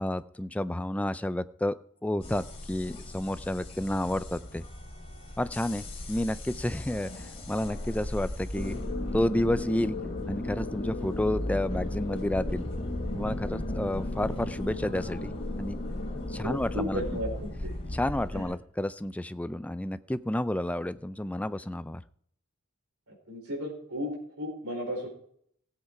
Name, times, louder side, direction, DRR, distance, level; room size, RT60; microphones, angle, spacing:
voice 1, 0.0-1.8 2.0-4.6 5.4-8.8 9.1-10.0 10.3-12.6 13.2-15.8 16.3-17.0 17.9-22.0, left 1 dB, 5° left, 14 dB, 0.4 m, -30 dB
sound 1, 2.2-18.4, left 1 dB, 30° left, 2.8 m, -37 dB
sound 2, 8.5-17.2, left 2 dB, 50° left, 1.6 m, -37 dB
voice 2, 16.4-17.7 18.3-18.4 23.1-25.1, equal, 75° right, 0 dB, 4.8 m, -35 dB
16.5 x 8.1 x 4.8 m, 0.66 s
head